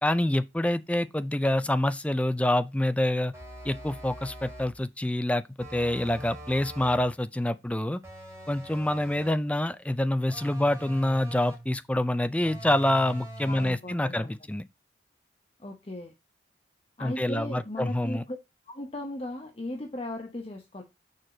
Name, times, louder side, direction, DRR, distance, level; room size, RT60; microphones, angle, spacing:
voice 1, 0.0-3.3 3.6-8.0 8.5-14.6 17.0-18.2, left 1 dB, 5° left, 0.4 m, -26 dB
sound 1, 3.3-4.8 5.6-7.1 8.0-9.5 10.3-11.8 12.4-13.9, right 1 dB, 15° right, 2.5 m, -43 dB
voice 2, 13.5-14.3 15.6-16.1 17.0-18.4 18.7-20.8, left 1 dB, 30° left, 0.8 m, -37 dB
6.7 x 4.7 x 3.8 m
head